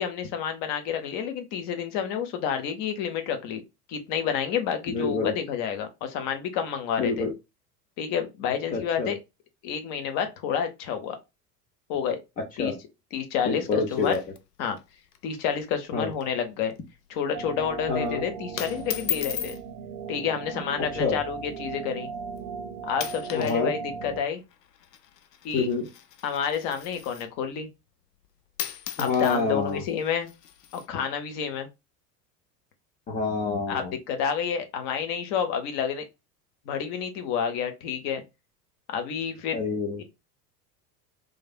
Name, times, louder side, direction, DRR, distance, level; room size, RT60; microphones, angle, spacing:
voice 1, 0.0-3.6 3.9-7.3 8.0-9.2 9.6-11.2 11.9-12.2 12.6-12.7 13.1-14.2 14.6-14.8 15.2-16.7 17.1-19.5 20.1-22.1 22.8-24.4 25.4-25.7 26.2-27.7 29.0-30.3 30.7-31.7 33.7-36.0 36.7-38.2 38.9-39.6 40.0-40.1, left 7 dB, 40° left, 0.8 m, -29 dB
voice 2, 4.9-5.3 7.0-7.3 8.7-9.1 12.6-12.8 13.5-14.2 15.9-16.1 17.9-18.2 20.9-21.2 23.3-23.7 25.5-25.9 29.0-29.8 33.1-33.9 39.5-40.0, left 4 dB, 20° left, 0.4 m, -27 dB
sound 1, 13.6-14.8 15.1-15.2 15.5-15.8 16.1-16.4 16.8-17.1 17.8-18.1 18.6-19.6 20.6-20.9 21.6-21.7 22.4-22.6 22.9-23.6 23.9-27.4 28.2-28.3 28.6-30.9, left 11 dB, 70° left, 0.6 m, -37 dB
sound 2, 17.3-24.2, right 6 dB, 55° right, 0.6 m, -37 dB
3.2 x 2.3 x 2.2 m
figure-of-eight pair, 75°, 49 cm